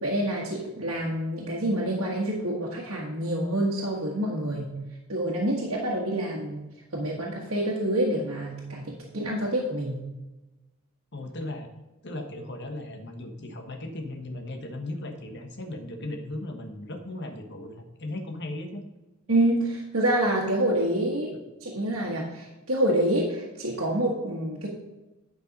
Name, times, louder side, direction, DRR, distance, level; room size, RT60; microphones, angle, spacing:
voice 1, 0.0-4.7 5.1-6.7 6.9-8.8 9.1-10.0 19.3-24.7, right 1 dB, 70° right, -5 dB, 1.5 m, -27 dB
voice 2, 11.1-11.7 12.0-18.8, left 1 dB, 55° left, 5 dB, 1.3 m, -37 dB
10.0 x 5.5 x 5.2 m, 1.1 s
head